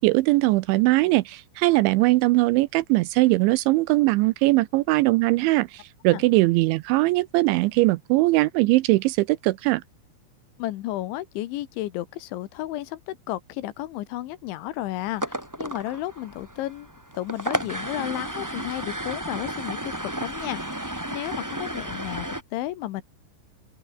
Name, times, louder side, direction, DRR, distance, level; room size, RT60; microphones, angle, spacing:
voice 1, 0.0-9.8, right 20 dB, 80° right, 2.8 m, -20 dB
voice 2, 10.6-16.9 17.2-23.0, left 15 dB, 75° left, 3.4 m, -33 dB
sound 1, 15.0-22.4, right 1 dB, 5° right, 1.7 m, -33 dB
open air
omnidirectional pair, 5.7 m